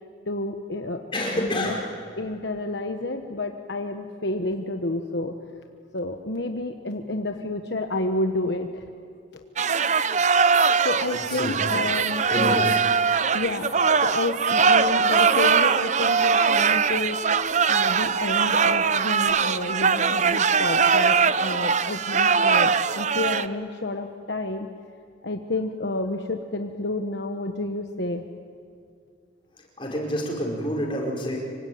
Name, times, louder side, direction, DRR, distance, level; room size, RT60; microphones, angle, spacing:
voice 1, 0.3-1.1 1.3-1.8 2.2-5.4 5.9-8.9 9.3-9.4 10.8-12.7 13.3-13.7 14.0-17.2 17.7-24.7 25.2-28.2, left 2 dB, 65° left, 5 dB, 1.2 m, -30 dB
voice 2, 1.1-1.8 11.4-11.7 12.3-12.6 29.8-31.4, left 1 dB, 25° left, -1 dB, 5.2 m, -28 dB
sound 1, 9.6-23.5, right 5 dB, 40° right, 0.7 m, -21 dB
26.0 x 24.0 x 9.4 m, 2.4 s
head